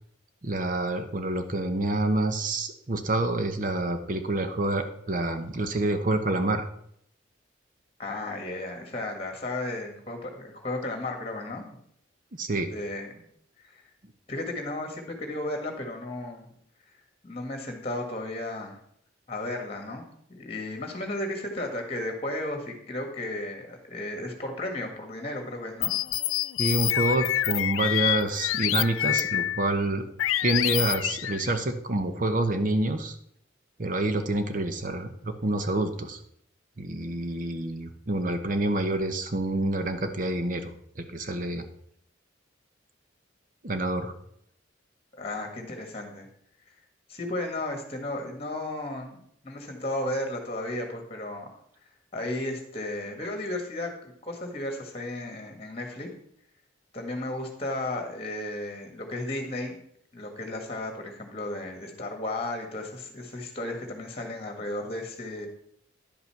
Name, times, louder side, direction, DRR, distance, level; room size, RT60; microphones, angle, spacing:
voice 1, 0.4-6.7 12.3-12.7 26.6-30.1 30.4-33.1 33.8-36.2 36.8-41.6 43.6-44.1, right 2 dB, 40° right, 8 dB, 0.9 m, -27 dB
voice 2, 8.0-11.6 12.7-13.3 13.6-13.8 14.3-16.5 17.2-18.8 19.3-25.9 45.1-46.3 47.1-49.2 49.4-51.5 52.1-56.1 56.9-59.8 60.1-65.5, left 1 dB, 30° left, 4 dB, 1.7 m, -34 dB
sound 1, 25.8-29.8 30.2-31.5, left 14 dB, 90° left, 0.3 m, -27 dB
11.0 x 5.6 x 5.8 m, 0.69 s
head